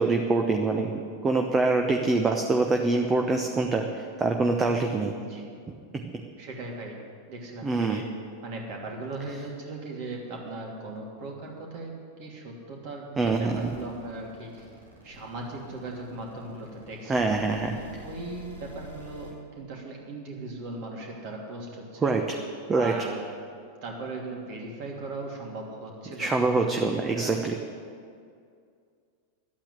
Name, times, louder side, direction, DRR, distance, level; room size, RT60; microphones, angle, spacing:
voice 1, 0.0-3.8 4.2-5.1 5.9-6.0 7.6-8.0 13.2-13.7 17.1-17.7 22.0-22.4 22.7-22.9 26.2-27.5, right 3 dB, 15° right, 3 dB, 0.9 m, -25 dB
voice 2, 5.2-5.5 6.4-7.0 7.3-8.0 8.4-11.9 12.2-14.7 15.0-17.5 17.7-22.2 22.7-23.3 23.8-27.3, right 2 dB, 45° right, -1 dB, 3.0 m, -38 dB
sound 1, 13.2-19.3, left 2 dB, 85° right, 3.0 m, -46 dB
12.0 x 8.9 x 9.8 m, 2.3 s
figure-of-eight pair, 90°, 0 cm